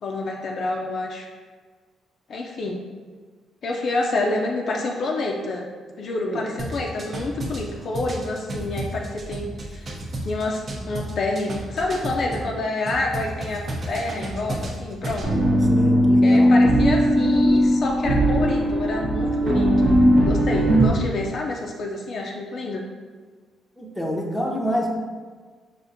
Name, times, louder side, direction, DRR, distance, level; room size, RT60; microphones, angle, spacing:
voice 1, 0.0-1.3 2.3-2.8 3.6-5.7 5.9-9.9 10.2-15.3 16.2-22.8, left 2 dB, 55° left, 0 dB, 0.4 m, -28 dB
sound 1, 6.6-12.5 12.9-15.3, right 1 dB, 45° right, 0.6 m, -32 dB
sound 2, 15.2-20.9, equal, 80° right, 1.3 m, -18 dB
voice 2, 15.3-16.5 23.8-24.9, equal, 5° left, -1 dB, 0.6 m, -28 dB
4.9 x 2.5 x 2.6 m, 1.5 s
cardioid pair, 90°, 0 cm